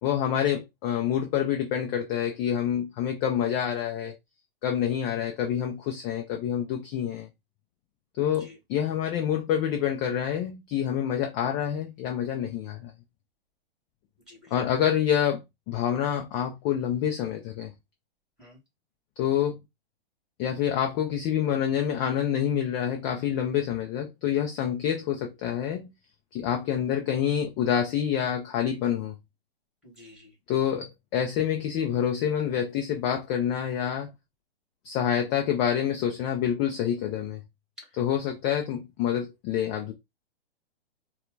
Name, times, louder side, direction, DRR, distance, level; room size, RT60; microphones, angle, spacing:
voice 1, 0.0-4.1 4.6-7.3 8.2-12.9 14.5-17.7 19.2-19.6 20.4-25.9 26.3-29.1 30.5-34.1 34.8-37.4 38.0-39.9, left 9 dB, 20° left, 0.5 m, -27 dB
voice 2, 29.8-30.3 37.8-37.9, left 2 dB, ahead, 2.5 m, -50 dB
4.1 x 2.3 x 3.9 m
hypercardioid pair, 140°, 31 cm